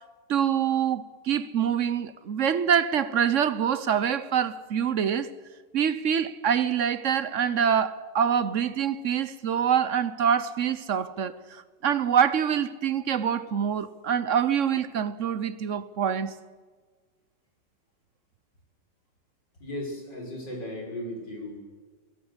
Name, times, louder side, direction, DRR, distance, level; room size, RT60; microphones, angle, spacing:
voice 1, 0.3-5.3 5.7-16.3, right 8 dB, 50° right, 1.1 m, -25 dB
voice 2, 19.6-21.5, left 1 dB, 75° left, 6.8 m, -36 dB
25.5 x 18.0 x 8.1 m
omnidirectional pair, 1.9 m